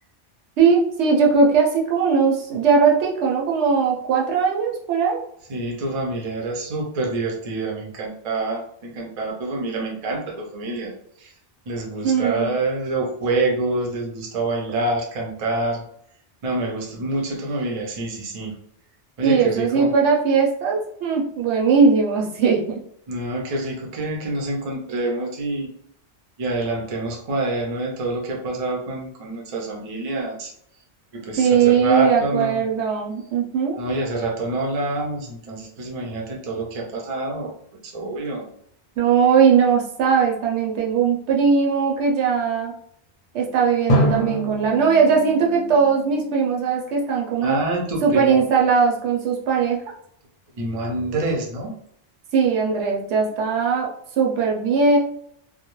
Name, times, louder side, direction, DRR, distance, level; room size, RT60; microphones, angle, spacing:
voice 1, 0.6-5.2 12.0-12.6 19.2-22.7 31.4-33.8 39.0-42.7 43.3-47.6 48.0-49.8 52.3-53.9 54.2-55.0, right 5 dB, 70° right, -1 dB, 0.8 m, -19 dB
voice 2, 5.5-10.9 11.2-11.3 11.7-15.8 16.4-18.6 19.2-19.9 23.1-25.7 26.4-30.5 31.1-32.6 33.8-37.5 37.8-38.5 47.4-48.4 50.5-51.7, right 2 dB, 45° right, 0 dB, 0.5 m, -26 dB
Drum, 43.9-46.8, right 1 dB, 55° left, 0.4 m, -25 dB
2.2 x 2.0 x 3.0 m, 0.70 s
omnidirectional pair, 1.2 m